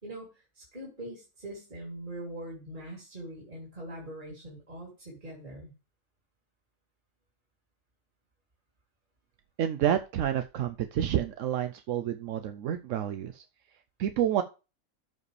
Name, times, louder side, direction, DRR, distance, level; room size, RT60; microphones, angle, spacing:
voice 1, 0.5-5.7, right 1 dB, 40° right, -3 dB, 3.2 m, -42 dB
voice 2, 9.6-13.4 14.0-14.4, right 10 dB, 80° right, 8 dB, 1.0 m, -29 dB
14.0 x 4.9 x 3.2 m, 0.31 s
omnidirectional pair, 1.3 m